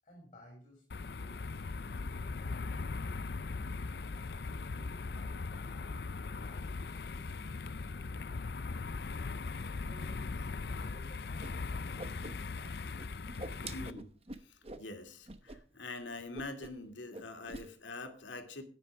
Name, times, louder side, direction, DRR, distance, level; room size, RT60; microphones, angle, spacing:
voice 1, 0.0-1.5 1.9-3.3 3.8-8.5 9.4-12.9, equal, 35° left, -1 dB, 6.6 m, -59 dB
sound 1, 0.9-13.9, left 4 dB, 60° left, 0.5 m, -39 dB
Whoosh swoosh swish, 11.4-11.5 11.8-12.7 13.0-14.9 15.3-15.6 15.8-16.0 16.3-16.9 17.1-17.7, right 2 dB, 30° right, 1.0 m, -46 dB
voice 2, 13.7-14.1 14.4-18.6, left 2 dB, 85° left, 6 dB, 2.4 m, -44 dB
15.5 x 10.0 x 3.5 m, 0.42 s
head